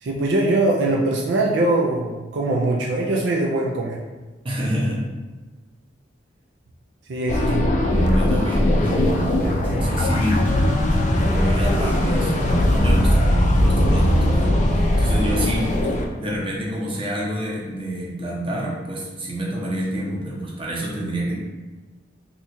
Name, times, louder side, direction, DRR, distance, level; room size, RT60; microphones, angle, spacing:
voice 1, 0.0-4.0 7.1-7.7, right 2 dB, 65° right, -2 dB, 0.4 m, -22 dB
voice 2, 4.4-5.0 7.4-10.5 11.1-15.7 16.2-21.4, equal, 30° right, -4 dB, 0.8 m, -27 dB
sound 1, 7.3-16.1, left 1 dB, 40° left, 0.4 m, -19 dB
sound 2, 7.9-12.8, equal, 10° left, 0.8 m, -35 dB
2.8 x 2.4 x 4.2 m, 1.2 s
head